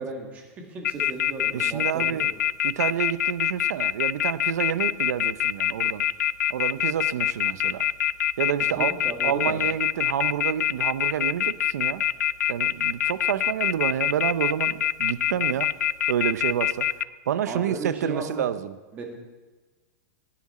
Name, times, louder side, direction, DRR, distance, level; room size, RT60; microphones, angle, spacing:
voice 1, 0.0-2.3 8.8-9.5 17.5-18.5 18.9-19.1, right 3 dB, 15° right, 1 dB, 1.9 m, -35 dB
sound 1, 0.8-17.0, left 12 dB, 85° left, 0.5 m, -24 dB
voice 2, 1.5-2.3 2.6-6.0 6.5-7.8 8.4-8.9 9.2-12.0 12.5-15.7 16.1-16.9 17.3-18.7, right 10 dB, 75° right, 14 dB, 0.8 m, -28 dB
18.0 x 11.5 x 4.3 m, 1.3 s
supercardioid pair, 175°, 9 cm